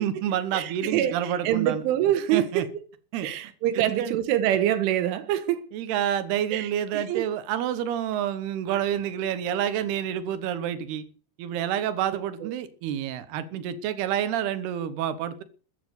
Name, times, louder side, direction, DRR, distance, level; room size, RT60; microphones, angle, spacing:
voice 1, 0.0-1.8 2.3-2.7 3.1-4.2 5.7-11.0 11.4-15.4, right 10 dB, 70° right, 2.7 m, -28 dB
voice 2, 0.5-2.5 3.2-5.6 6.5-6.7 6.9-7.2 12.4-12.5, right 12 dB, 90° right, 3.7 m, -25 dB
14.0 x 9.4 x 8.0 m
omnidirectional pair, 5.5 m